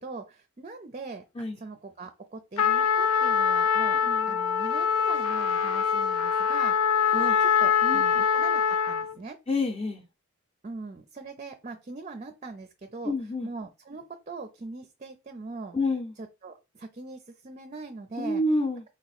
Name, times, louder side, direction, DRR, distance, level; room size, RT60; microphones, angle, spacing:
voice 1, 0.0-1.2 1.5-9.4 10.6-13.1 13.4-15.8 16.4-18.4, right 3 dB, 35° right, 0.5 m, -41 dB
Trumpet, 2.6-9.1, left 7 dB, 85° left, 0.5 m, -24 dB
voice 2, 4.0-4.4 7.1-7.4 7.8-8.2 9.5-10.0 13.0-13.5 15.7-16.1 18.2-18.8, left 2 dB, 25° left, 0.7 m, -29 dB
4.3 x 2.9 x 4.1 m
head